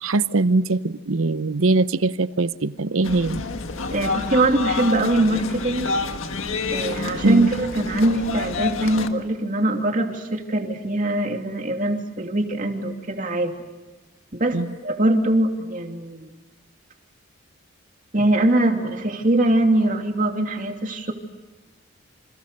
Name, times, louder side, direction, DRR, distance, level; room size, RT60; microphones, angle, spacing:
voice 1, 0.0-3.4 7.2-7.5 14.5-14.8, right 3 dB, 85° right, 15 dB, 0.8 m, -21 dB
sound 1, 3.0-9.1, left 3 dB, 80° left, 1.7 m, -28 dB
voice 2, 3.9-5.9 6.7-13.5 14.3-14.6 14.8-16.3 18.1-21.1, right 1 dB, 40° right, 4 dB, 2.7 m, -22 dB
29.0 x 27.5 x 6.8 m, 1.2 s
head